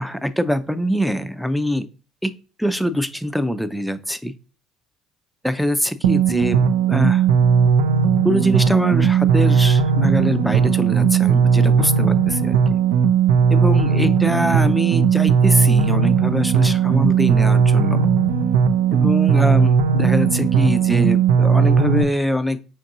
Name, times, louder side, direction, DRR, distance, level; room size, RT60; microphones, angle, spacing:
voice 1, 0.0-1.9 2.2-2.3 2.6-4.3 5.4-7.2 8.2-12.6 13.5-18.1 18.9-22.6, equal, ahead, 11 dB, 0.5 m, -23 dB
sound 1, 6.0-22.0, right 6 dB, 80° right, 0.3 m, -17 dB
5.8 x 2.6 x 2.7 m, 0.35 s
hypercardioid pair, 55°, 0 cm